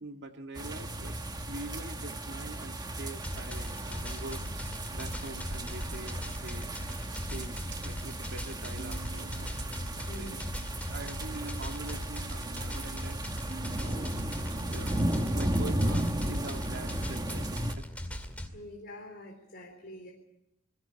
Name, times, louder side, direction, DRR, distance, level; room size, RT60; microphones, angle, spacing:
voice 1, 0.0-1.2 1.4-10.4 10.9-13.2 13.7-14.1 14.6-15.0 15.2-17.9, right 2 dB, 60° right, 4 dB, 2.0 m, -44 dB
sound 1, 0.6-17.7, right 1 dB, 20° right, 1.5 m, -35 dB
sound 2, 3.2-18.5, left 1 dB, 5° left, 2.2 m, -39 dB
sound 3, 8.8-15.9, right 2 dB, 45° right, 1.2 m, -50 dB
voice 2, 10.0-10.5 18.5-20.1, left 1 dB, 50° left, 0 dB, 3.9 m, -45 dB
21.0 x 16.5 x 8.3 m, 0.85 s
head